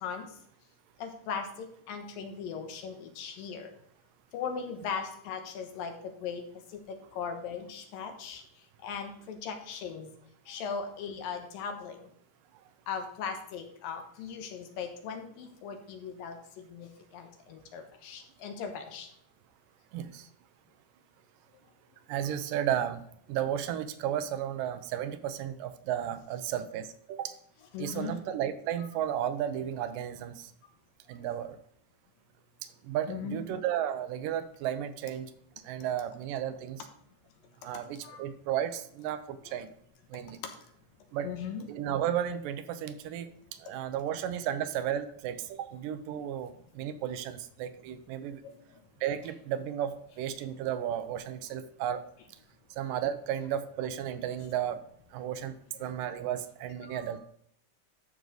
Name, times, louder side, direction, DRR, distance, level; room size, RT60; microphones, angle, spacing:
voice 1, 1.0-1.5 1.9-3.7 4.3-5.9 6.2-6.4 7.2-8.4 8.8-10.1 10.5-12.0 12.9-16.4 16.7-16.9 17.1-19.1 27.7-28.2 33.1-33.4 38.0-38.2 41.2-41.6 48.4-48.6, left 6 dB, 80° left, 5 dB, 2.8 m, -38 dB
voice 2, 19.9-20.3 22.1-23.0 23.3-27.3 27.8-30.5 31.1-31.6 32.8-35.3 35.6-36.9 37.6-39.7 40.1-40.4 41.1-41.3 41.7-48.4 49.0-52.0 52.7-54.8 55.1-57.2, right 10 dB, 80° right, 11 dB, 2.3 m, -33 dB
12.0 x 6.3 x 3.9 m, 0.68 s
omnidirectional pair, 4.0 m